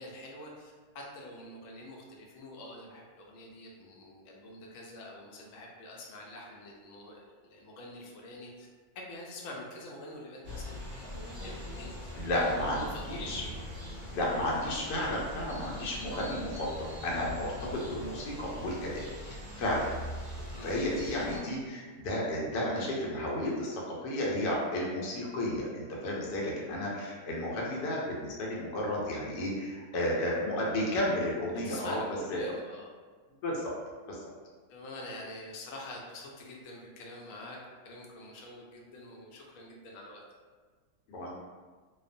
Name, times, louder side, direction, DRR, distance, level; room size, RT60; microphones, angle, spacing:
voice 1, 0.0-8.7 8.9-13.5 20.5-20.8 31.6-32.9 34.7-37.6 37.8-40.2, left 1 dB, 70° left, -2 dB, 0.8 m, -46 dB
sound 1, 10.4-21.4, left 1 dB, 35° right, 0.4 m, -42 dB
voice 2, 12.1-13.4 14.0-19.9 20.6-32.0 32.3-32.5 33.4-33.7 34.1-34.2 41.1-41.3, left 1 dB, 90° left, -4 dB, 1.3 m, -32 dB
2.9 x 2.0 x 2.5 m, 1.5 s
omnidirectional pair, 1.7 m